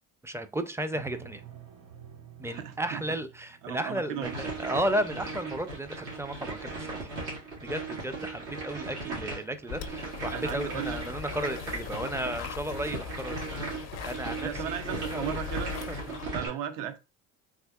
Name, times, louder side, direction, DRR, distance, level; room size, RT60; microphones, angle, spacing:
voice 1, 0.2-1.4 2.4-7.1 7.6-13.7 14.0-15.4 15.9-16.2, right 1 dB, 10° right, 0.4 m, -34 dB
sound 1, 0.9-4.8 6.7-7.1 7.5-7.6 7.9-8.5, right 8 dB, 45° right, 1.0 m, -51 dB
voice 2, 2.4-3.2 3.6-4.3 10.3-11.0 14.4-15.7 16.3-17.0, right 9 dB, 70° right, 0.6 m, -36 dB
sound 2, 4.2-16.5, right 3 dB, 90° right, 1.6 m, -37 dB
sound 3, 9.7-16.3, left 9 dB, 50° left, 0.5 m, -40 dB
3.6 x 2.8 x 2.3 m
supercardioid pair, 75°, 34 cm